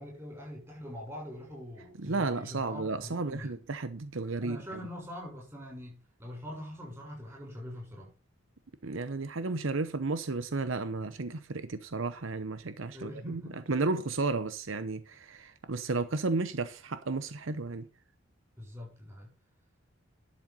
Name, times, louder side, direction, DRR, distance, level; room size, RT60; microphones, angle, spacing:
voice 1, 0.0-3.6 4.4-8.1 10.9-11.1 12.9-13.6 18.6-19.3, left 1 dB, 15° right, 6.9 m, -43 dB
voice 2, 2.0-4.6 8.8-17.9, right 3 dB, 70° right, 0.8 m, -33 dB
11.5 x 7.5 x 5.6 m
head